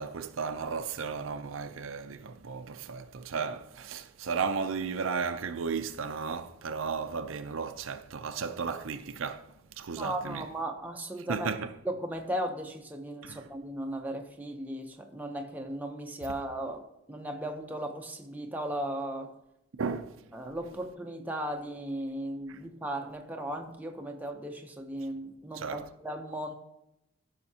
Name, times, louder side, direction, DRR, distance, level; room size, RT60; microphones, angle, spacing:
voice 1, 0.0-10.5 11.3-11.8 13.2-13.5 19.8-20.2 22.5-22.6 25.5-25.9, right 5 dB, 75° right, 0.5 m, -34 dB
voice 2, 10.0-11.5 11.9-16.8 17.1-19.3 20.3-26.5, right 1 dB, 10° right, 0.7 m, -36 dB
14.5 x 5.7 x 2.8 m
head